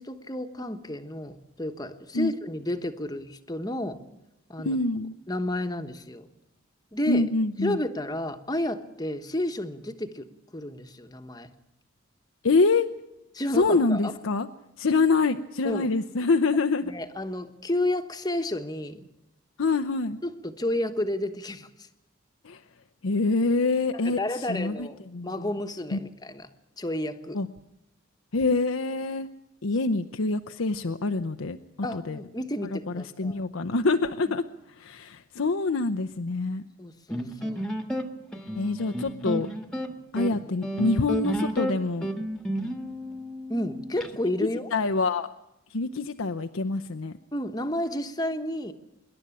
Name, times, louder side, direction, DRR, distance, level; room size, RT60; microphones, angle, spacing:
voice 1, 0.0-4.0 4.5-4.8 5.3-6.3 6.9-7.3 7.6-10.3 10.5-11.5 13.3-14.1 15.6-15.9 16.8-19.1 20.2-21.9 24.0-25.0 25.2-26.5 26.8-27.4 31.8-33.4 34.3-34.4 36.8-37.6 43.5-44.7 47.3-48.7, left 1 dB, 20° left, 8 dB, 1.2 m, -31 dB
voice 2, 4.6-5.1 7.1-7.8 12.4-12.9 13.5-14.5 14.8-16.9 19.6-20.2 22.4-22.6 23.0-24.9 25.1-25.5 25.9-26.0 27.3-27.5 28.3-29.3 29.6-31.6 31.9-32.2 32.7-34.4 34.8-36.6 38.5-39.5 40.1-42.1 44.4-45.3 45.7-47.2, left 3 dB, 80° left, 6 dB, 0.7 m, -25 dB
electric guitar, 37.1-44.1, equal, 5° left, 1.5 m, -32 dB
25.5 x 11.5 x 10.0 m, 0.89 s
head